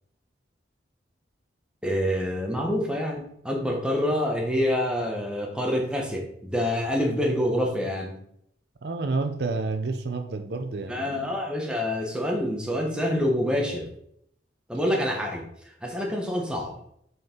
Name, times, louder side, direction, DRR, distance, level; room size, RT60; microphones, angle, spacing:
voice 1, 1.8-8.1 10.9-13.9 14.7-15.4 15.8-16.7, equal, 5° right, 1.0 m, -26 dB
voice 2, 8.8-11.4, right 3 dB, 60° right, 0.5 m, -30 dB
6.3 x 4.4 x 3.6 m
head